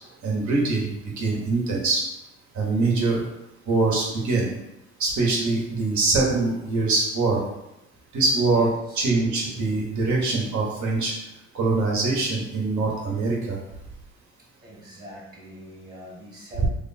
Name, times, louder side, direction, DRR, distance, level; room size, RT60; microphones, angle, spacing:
voice 1, 0.2-2.0 2.5-3.2 3.7-4.5 5.0-7.4 8.1-11.1 11.5-13.6 16.6-16.7, right 3 dB, 70° right, -2 dB, 1.2 m, -23 dB
voice 2, 8.5-9.1 14.6-16.7, equal, 30° right, -4 dB, 1.2 m, -43 dB
3.2 x 2.3 x 4.1 m, 0.88 s
cardioid pair, 90°, 30 cm